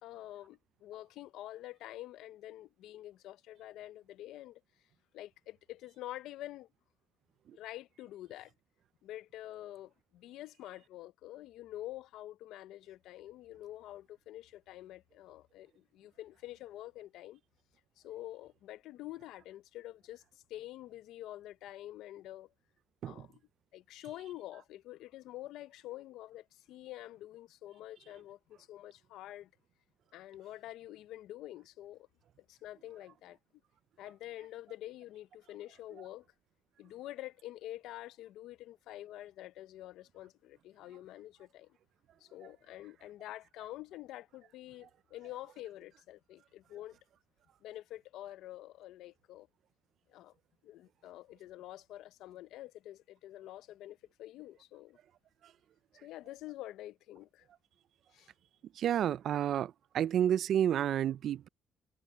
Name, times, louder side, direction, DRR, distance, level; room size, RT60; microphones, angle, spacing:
voice 1, 0.0-4.6 5.1-6.7 7.5-8.5 9.0-17.4 18.0-20.2 20.5-22.5 23.0-23.4 23.7-29.5 30.1-32.1 32.4-33.4 34.0-36.3 36.8-41.8 42.2-47.0 47.6-49.5 50.1-50.3 50.6-55.0 56.0-57.5 58.1-58.3, left 14 dB, 90° left, 0.5 m, -47 dB
voice 2, 58.8-61.5, right 10 dB, 70° right, 0.4 m, -30 dB
cardioid pair, 90°, 0 cm